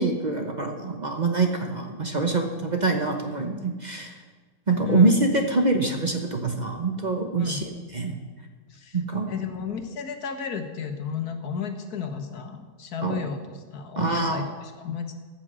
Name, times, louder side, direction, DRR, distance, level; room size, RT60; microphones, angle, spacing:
voice 1, 0.0-4.2 4.7-7.6 7.9-8.2 8.9-9.3 13.0-13.2 14.0-14.4, right 3 dB, 35° right, 3 dB, 0.9 m, -25 dB
voice 2, 4.8-5.2 7.4-7.6 8.7-9.0 9.3-15.1, left 6 dB, 80° left, 7 dB, 1.6 m, -33 dB
14.5 x 6.1 x 7.5 m, 1.4 s
omnidirectional pair, 1.6 m